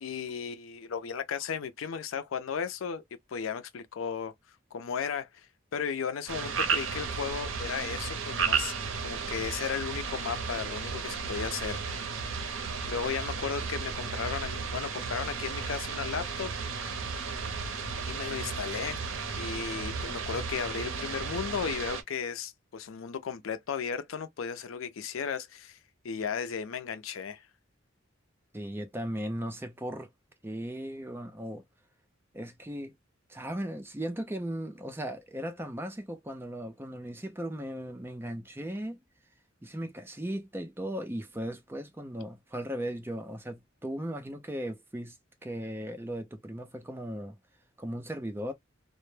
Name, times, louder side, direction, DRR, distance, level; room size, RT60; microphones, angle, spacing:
voice 1, 0.0-3.0 3.3-4.3 4.7-5.5 5.7-8.7 9.0-12.1 12.9-16.5 18.0-19.0 19.3-25.8 26.0-27.4, left 6 dB, 80° left, 0.5 m, -35 dB
sound 1, 6.3-22.0, right 5 dB, 70° right, 0.6 m, -34 dB
voice 2, 28.5-30.1 30.4-31.6 32.3-32.9 33.3-39.0 39.6-45.2 45.4-47.4 47.8-48.5, right 1 dB, 10° right, 0.4 m, -37 dB
2.1 x 2.0 x 3.1 m
head